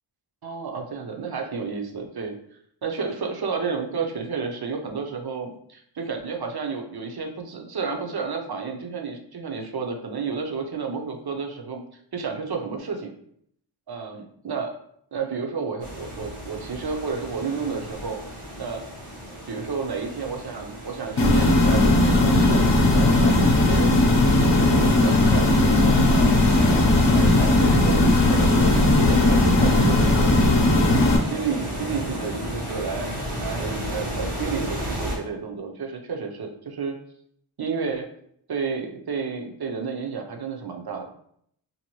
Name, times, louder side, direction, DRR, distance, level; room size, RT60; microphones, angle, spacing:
voice 1, 0.4-2.4 2.8-11.8 12.1-13.1 13.9-14.8 15.1-18.2 18.6-18.9 19.5-23.9 24.2-33.1 33.4-37.0 37.6-38.1 38.5-41.1, right 5 dB, 50° right, 3 dB, 0.6 m, -31 dB
sound 1, 15.8-35.2, equal, 90° right, 1.1 m, -33 dB
sound 2, 21.2-31.2, left 2 dB, 60° left, 0.7 m, -18 dB
2.7 x 2.5 x 3.0 m, 0.67 s
wide cardioid pair, 60°, 49 cm